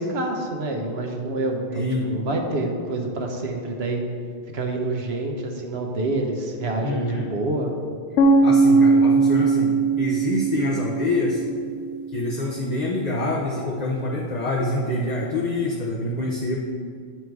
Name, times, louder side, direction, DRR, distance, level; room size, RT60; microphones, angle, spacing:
voice 1, 0.0-4.0 4.5-7.7, right 2 dB, 75° right, 2 dB, 1.1 m, -27 dB
voice 2, 1.7-2.1 6.8-7.2 8.4-11.4 12.1-16.6, left 2 dB, 45° left, -3 dB, 0.8 m, -26 dB
sound 1, 8.2-12.1, right 3 dB, 90° left, 0.9 m, -19 dB
9.0 x 4.4 x 4.7 m, 2.2 s
omnidirectional pair, 1.1 m